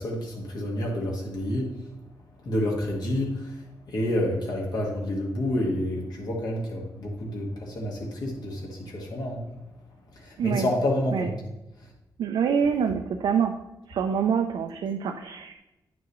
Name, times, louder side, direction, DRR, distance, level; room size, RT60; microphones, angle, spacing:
voice 1, 0.0-1.8 2.4-9.4 10.1-11.3, left 1 dB, 60° left, -1 dB, 1.7 m, -29 dB
voice 2, 12.2-13.5 13.9-15.5, right 7 dB, 85° right, 4 dB, 0.6 m, -26 dB
9.6 x 6.1 x 3.1 m, 0.95 s
wide cardioid pair, 160°, 8 cm